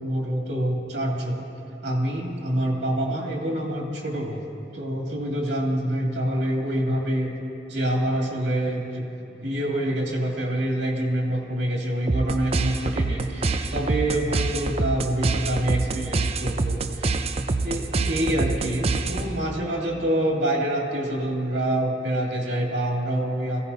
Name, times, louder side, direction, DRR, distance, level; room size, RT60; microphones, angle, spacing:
voice 1, 0.0-1.5 1.8-7.3 7.7-9.0 9.4-17.1 17.6-23.6, right 1 dB, 85° right, -1 dB, 2.3 m, -26 dB
sound 1, 12.1-19.5, right 3 dB, 35° right, 0.5 m, -26 dB
22.5 x 15.5 x 2.8 m, 2.7 s
head